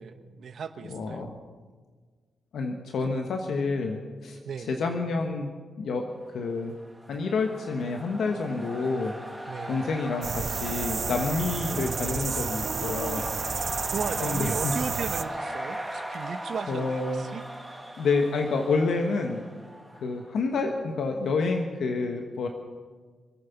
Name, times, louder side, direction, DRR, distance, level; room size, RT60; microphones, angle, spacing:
voice 1, 0.0-1.3 3.0-3.1 4.4-4.9 9.5-9.9 12.6-13.2 13.9-17.4, right 6 dB, 65° right, 9 dB, 1.2 m, -36 dB
voice 2, 0.8-1.4 2.5-6.8 7.1-9.2 9.7-13.2 14.2-14.8 16.7-17.2 18.0-19.4 20.0-22.5, left 3 dB, 75° left, 3 dB, 1.3 m, -29 dB
sound 1, 6.6-20.4, right 1 dB, ahead, 2.4 m, -38 dB
sound 2, 10.2-15.2, right 5 dB, 45° right, 0.6 m, -31 dB
26.0 x 9.3 x 5.9 m, 1.5 s
cardioid pair, 110°, 0 cm